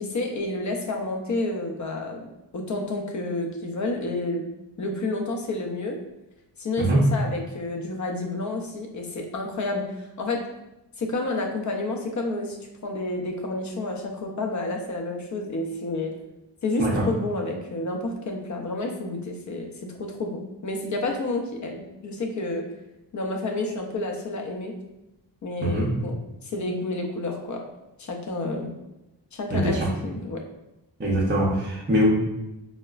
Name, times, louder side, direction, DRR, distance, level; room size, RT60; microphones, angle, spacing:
voice 1, 0.0-2.2 2.5-4.4 4.8-6.0 6.6-9.8 10.2-10.4 11.0-12.6 12.8-16.1 16.6-19.7 20.0-22.6 23.1-24.7 25.4-26.1 26.4-27.6 28.0-28.7 29.3-30.4, left 2 dB, 45° left, 2 dB, 0.5 m, -30 dB
voice 2, 29.5-29.9 31.0-32.1, right 1 dB, 25° right, -5 dB, 0.5 m, -22 dB
4.7 x 2.1 x 2.3 m, 0.93 s
wide cardioid pair, 150°, 43 cm